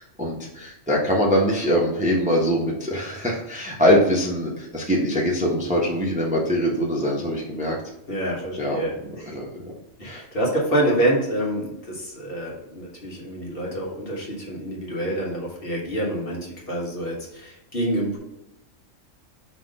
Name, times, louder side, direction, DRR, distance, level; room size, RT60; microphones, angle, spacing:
voice 1, 0.0-7.8 8.6-9.7 10.0-10.2, equal, 5° right, -3 dB, 0.9 m, -23 dB
voice 2, 8.1-9.4 10.0-18.2, right 1 dB, 45° left, -3 dB, 1.6 m, -27 dB
5.9 x 3.2 x 5.3 m, 0.86 s
omnidirectional pair, 1.4 m